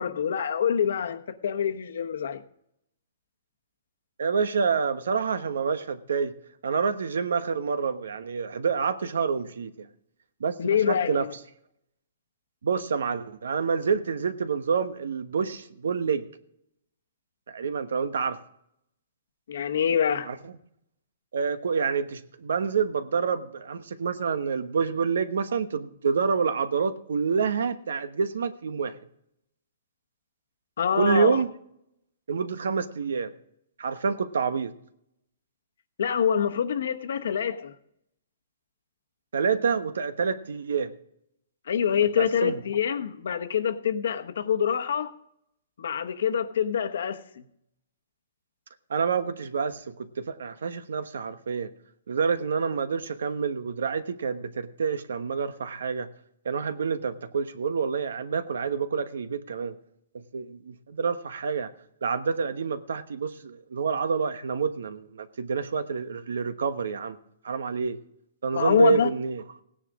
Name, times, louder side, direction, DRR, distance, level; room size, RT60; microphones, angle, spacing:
voice 1, 0.0-2.4 10.6-11.3 19.5-20.3 30.8-31.4 36.0-37.7 41.7-45.1 45.8-47.4 68.5-69.1, left 8 dB, 65° left, 1.2 m, -26 dB
voice 2, 4.2-6.3 6.6-9.9 10.4-11.3 12.6-16.2 17.5-18.4 20.3-20.4 21.3-29.0 30.9-31.5 32.3-33.3 33.8-34.7 39.3-40.9 42.2-42.6 48.9-51.7 52.1-56.1 56.4-59.7 60.1-61.7 62.0-67.2 67.4-68.0 68.4-69.4, right 5 dB, 85° right, 1.2 m, -27 dB
17.0 x 10.0 x 3.7 m
hypercardioid pair, 170°, 0 cm